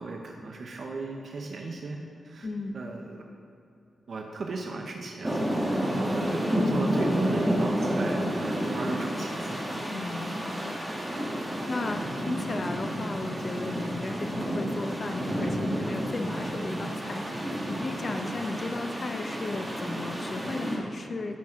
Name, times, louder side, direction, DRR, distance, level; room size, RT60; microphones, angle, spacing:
voice 1, 0.0-2.0 2.2-2.5 2.7-3.2 4.1-5.5 5.8-9.6, right 3 dB, 55° right, 1 dB, 0.8 m, -37 dB
voice 2, 2.4-2.8 6.0-6.2 9.9-10.8 11.0-21.4, left 3 dB, 40° left, 5 dB, 0.7 m, -35 dB
sound 1, 5.2-20.8, equal, 10° right, 1.5 m, -30 dB
13.5 x 6.0 x 3.7 m, 2.5 s
wide cardioid pair, 140°, 0 cm